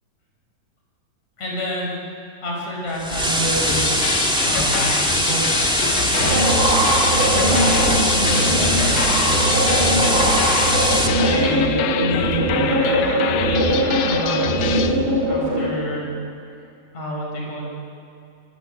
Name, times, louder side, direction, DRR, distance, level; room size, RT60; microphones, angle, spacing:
voice 1, 1.4-2.0 2.4-4.0 4.4-5.6 5.8-6.5 7.3-9.7 11.1-13.1 13.4-13.7 14.0-15.0 15.3-16.1 16.9-17.7, equal, 50° left, -2 dB, 7.2 m, -29 dB
sound 1, 3.0-11.1, equal, ahead, 1.7 m, -21 dB
sound 2, 3.7-15.0, left 10 dB, 75° left, 2.3 m, -27 dB
sound 3, 6.2-15.7, right 1 dB, 50° right, 5.5 m, -20 dB
25.0 x 23.0 x 8.5 m, 2.5 s
omnidirectional pair, 4.0 m